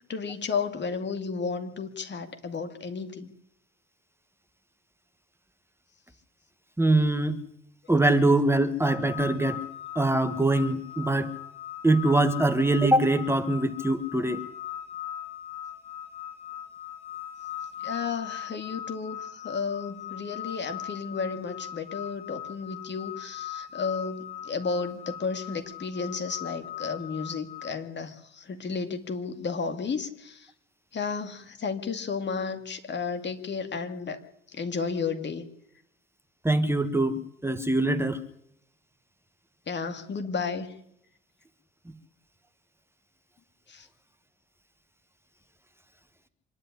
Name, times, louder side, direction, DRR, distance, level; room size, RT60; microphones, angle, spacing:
voice 1, 0.1-3.3 17.8-30.5 30.9-34.2 34.5-35.5 39.7-40.7 43.7-43.9, left 5 dB, 35° left, 2.2 m, -33 dB
voice 2, 6.8-7.4 7.9-9.6 9.9-11.3 11.8-14.4 36.4-38.2, right 2 dB, 10° right, 1.5 m, -23 dB
sound 1, 8.8-27.7, left 10 dB, 20° left, 1.7 m, -40 dB
25.0 x 11.0 x 9.9 m
figure-of-eight pair, 50°, 31 cm